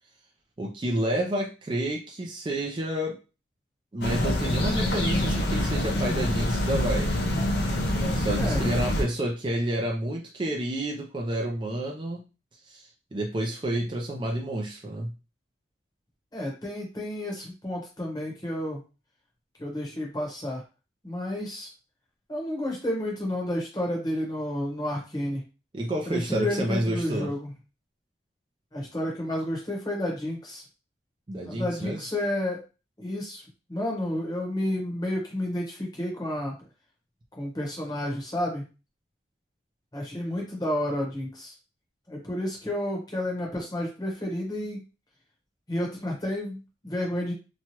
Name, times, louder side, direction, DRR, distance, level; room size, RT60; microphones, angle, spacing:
voice 1, 0.6-3.2 3.9-7.1 8.1-12.2 12.6-15.1 25.7-27.3 31.3-32.1, right 1 dB, 25° right, 0 dB, 0.4 m, -30 dB
sound 1, 4.0-9.0, left 1 dB, 60° left, 0.6 m, -26 dB
voice 2, 8.3-8.7 16.3-18.8 19.6-20.6 21.0-21.7 22.3-25.4 26.1-27.5 28.7-30.6 31.4-32.6 33.0-33.4 33.7-36.5 37.4-38.6 39.9-41.5 42.1-44.8 45.7-47.3, left 1 dB, 20° left, -1 dB, 1.0 m, -31 dB
2.9 x 2.3 x 2.8 m, 0.31 s
head